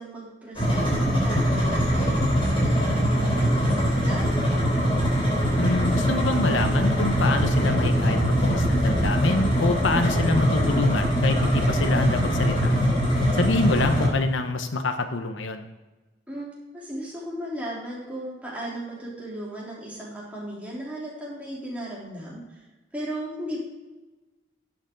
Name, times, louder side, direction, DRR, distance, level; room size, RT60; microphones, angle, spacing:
voice 1, 0.0-4.3 16.3-16.5 16.7-22.6 22.9-23.6, right 1 dB, 10° right, -6 dB, 3.5 m, -36 dB
sound 1, 0.6-14.1, equal, 30° left, 3.3 m, -22 dB
voice 2, 5.6-12.7 13.3-15.6, left 3 dB, 85° left, 7 dB, 0.9 m, -26 dB
11.5 x 8.1 x 3.9 m, 1.1 s
head